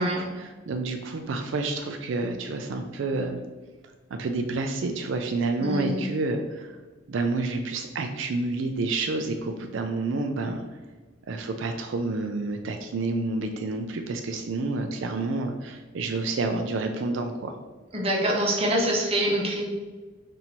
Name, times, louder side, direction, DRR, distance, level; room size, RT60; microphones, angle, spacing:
voice 1, 0.4-3.4 4.1-6.8 7.1-10.6 11.3-17.5, right 3 dB, 65° right, 5 dB, 0.4 m, -29 dB
voice 2, 5.6-6.0 17.9-19.6, right 1 dB, 30° right, -2 dB, 0.8 m, -25 dB
4.4 x 2.6 x 4.2 m, 1.3 s
head